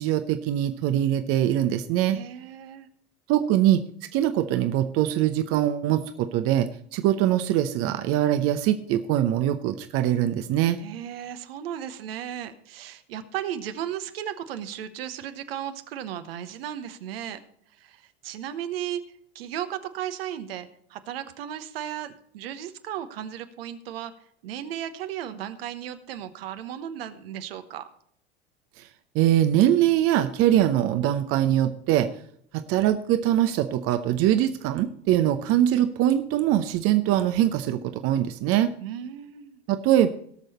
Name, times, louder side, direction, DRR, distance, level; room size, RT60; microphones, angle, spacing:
voice 1, 0.0-2.2 3.3-3.8 4.1-10.8 28.8-28.9 29.1-32.1 32.5-38.7 39.7-40.1, right 12 dB, 45° right, 9 dB, 0.8 m, -22 dB
voice 2, 2.1-2.9 10.8-17.4 17.7-19.0 19.3-24.1 24.4-27.9 38.8-39.6, right 10 dB, 70° right, 10 dB, 1.1 m, -35 dB
18.0 x 6.4 x 4.2 m, 0.64 s
hypercardioid pair, 80°, 31 cm